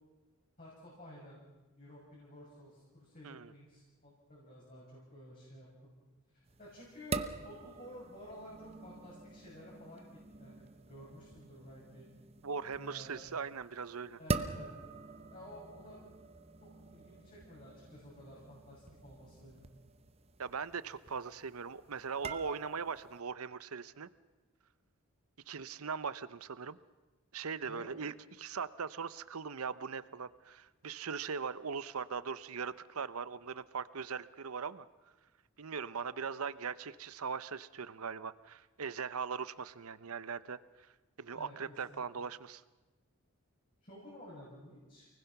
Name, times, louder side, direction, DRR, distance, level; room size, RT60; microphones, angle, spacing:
voice 1, 0.6-1.4 1.8-5.9 6.3-12.1 12.8-13.3 14.2-14.7 15.3-16.0 16.6-19.6 27.6-27.9 41.3-41.5 41.9-42.0 43.8-45.1, left 1 dB, 40° left, -5 dB, 6.8 m, -53 dB
sound 1, 6.5-23.2, right 3 dB, 30° right, 0.9 m, -45 dB
voice 2, 12.4-14.2 20.4-24.1 25.5-26.8 27.3-34.9 35.6-40.9 41.2-42.6, right 5 dB, 90° right, 15 dB, 0.8 m, -40 dB
29.5 x 20.0 x 6.0 m, 1.2 s
head